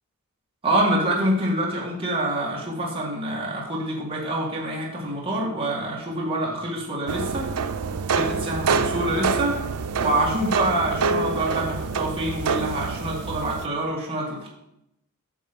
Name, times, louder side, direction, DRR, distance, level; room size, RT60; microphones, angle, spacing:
voice 1, 0.6-7.5 8.1-9.6 10.0-14.5, right 1 dB, 25° right, -4 dB, 2.1 m, -26 dB
sound 1, 7.1-13.7, right 5 dB, 85° right, 0.6 m, -26 dB
9.1 x 6.7 x 5.3 m, 0.82 s
head